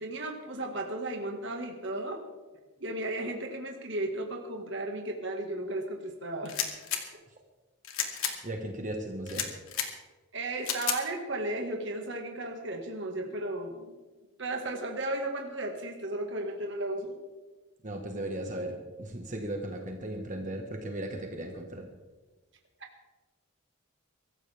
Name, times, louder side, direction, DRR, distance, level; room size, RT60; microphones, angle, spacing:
voice 1, 0.0-2.2 2.8-6.6 10.3-14.0 14.4-17.2, right 2 dB, 55° right, 2 dB, 1.8 m, -34 dB
sound 1, 6.4-7.0 7.8-8.3 9.3-9.9 10.6-11.0, left 8 dB, 75° left, 2.3 m, -31 dB
voice 2, 8.4-9.5 17.8-21.9, right 1 dB, 35° right, 2 dB, 1.5 m, -36 dB
24.0 x 14.5 x 3.5 m, 1.3 s
head